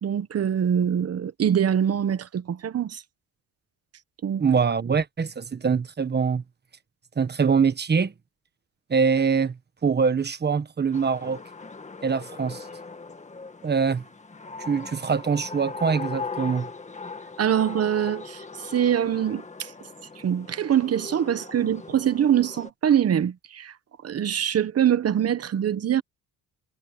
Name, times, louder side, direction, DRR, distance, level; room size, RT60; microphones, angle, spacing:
voice 1, 0.0-3.0 4.2-4.4 17.4-19.7 20.2-23.7 24.0-26.0, right 9 dB, 45° right, 1.1 m, -24 dB
voice 2, 4.4-6.4 7.2-8.1 8.9-9.5 9.8-11.4 12.0-12.6 13.6-14.0 14.7-16.7, right 5 dB, 30° right, 1.4 m, -23 dB
sound 1, 10.9-22.7, left 4 dB, 20° left, 1.7 m, -39 dB
cardioid pair, 120°, 35 cm